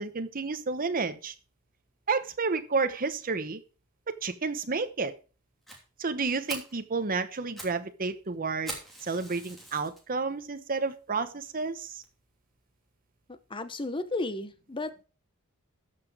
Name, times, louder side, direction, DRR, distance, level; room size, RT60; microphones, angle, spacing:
voice 1, 0.0-1.3 2.1-3.6 4.1-5.1 6.0-8.7 9.0-12.0, right 4 dB, 40° right, 9 dB, 1.0 m, -31 dB
Fire, 5.7-5.8 6.2-6.3 6.5-6.8 7.3-7.8 8.1-8.2 8.7-10.0 10.6-10.7 11.2-11.3 11.6-11.7 12.0-12.1, right 1 dB, ahead, 3.2 m, -42 dB
voice 2, 13.3-15.0, left 2 dB, 20° left, 11 dB, 0.9 m, -34 dB
13.5 x 5.9 x 4.9 m, 0.35 s
head